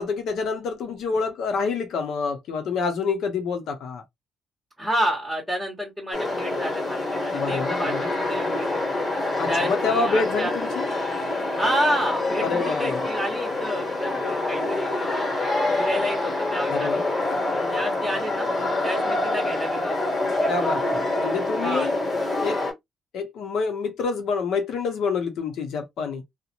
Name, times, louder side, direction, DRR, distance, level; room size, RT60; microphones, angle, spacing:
voice 1, 0.0-4.0 7.3-8.1 9.4-10.8 12.4-13.0 16.7-17.0 20.5-20.8 21.2-22.0 22.4-22.6 23.1-26.2, left 4 dB, 75° left, 0.8 m, -27 dB
voice 2, 4.8-8.8 9.5-10.5 11.6-15.4 15.8-17.0 17.5-18.5 18.8-20.9 21.6-21.9, equal, ahead, 1.1 m, -30 dB
sound 1, 6.1-22.7, left 2 dB, 35° left, 1.5 m, -26 dB
2.5 x 2.1 x 2.8 m
cardioid pair, 90°, 0 cm